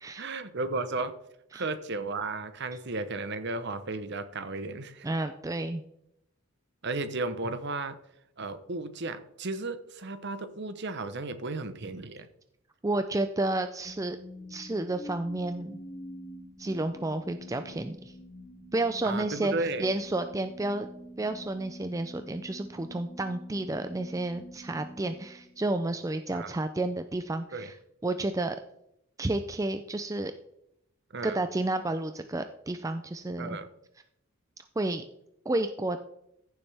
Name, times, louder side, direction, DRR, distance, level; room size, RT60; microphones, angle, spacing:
voice 1, 0.2-1.1 1.5-5.1 6.8-8.0 8.4-12.3 19.0-19.9 26.3-26.5 27.5-27.7 31.1-31.4 33.4-33.7, right 3 dB, 50° right, 11 dB, 0.9 m, -34 dB
voice 2, 5.0-5.8 12.8-14.2 14.5-15.8 16.6-18.1 18.7-20.9 21.2-27.7 28.0-28.6 29.2-30.3 31.2-33.6 34.8-35.0 35.5-36.0, right 2 dB, 15° right, 8 dB, 0.4 m, -31 dB
sound 1, 13.9-26.0, left 1 dB, 20° left, 0.9 m, -46 dB
15.0 x 7.1 x 3.4 m, 0.76 s
head